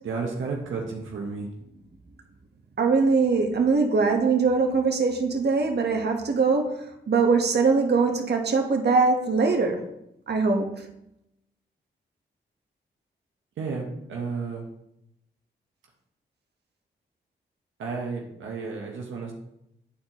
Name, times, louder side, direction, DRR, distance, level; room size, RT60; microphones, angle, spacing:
voice 1, 0.0-1.5 13.6-14.6 17.8-19.3, right 4 dB, 75° right, -1 dB, 1.1 m, -32 dB
voice 2, 2.8-9.8 10.3-10.9, right 4 dB, 55° right, 3 dB, 1.1 m, -22 dB
9.9 x 4.4 x 2.9 m, 0.82 s
supercardioid pair, 45°, 21 cm